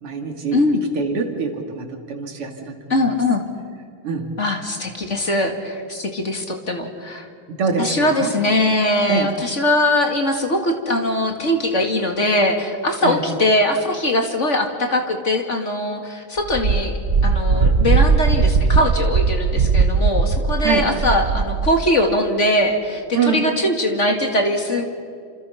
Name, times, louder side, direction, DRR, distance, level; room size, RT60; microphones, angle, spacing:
voice 1, 0.0-0.6 0.9-3.0 4.0-4.3 7.5-8.3 9.1-9.3 13.0-13.2 20.6-20.9 23.1-23.4, right 5 dB, 90° right, 4 dB, 3.4 m, -24 dB
voice 2, 0.5-0.8 2.9-3.4 4.4-7.3 7.8-17.0 17.2-24.8, left 1 dB, 35° left, 4 dB, 2.6 m, -21 dB
Wind, 16.5-21.8, right 4 dB, 55° right, 0.6 m, -18 dB
29.0 x 27.5 x 5.8 m, 2.3 s
omnidirectional pair, 2.4 m